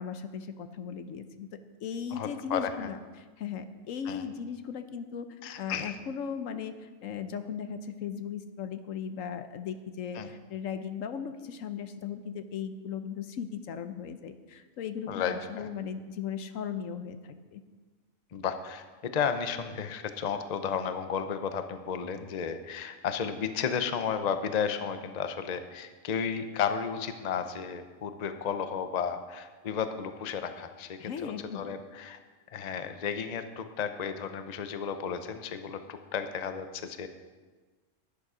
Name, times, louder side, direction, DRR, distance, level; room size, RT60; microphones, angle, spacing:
voice 1, 0.0-1.5 1.8-17.6 31.0-31.8, left 7 dB, 80° left, 10 dB, 1.1 m, -37 dB
voice 2, 2.1-2.7 4.1-4.2 5.4-5.9 10.1-10.3 15.1-15.7 18.3-32.2 32.5-37.1, left 7 dB, 40° left, 8 dB, 0.7 m, -33 dB
11.5 x 11.0 x 4.9 m, 1.4 s
omnidirectional pair, 1.4 m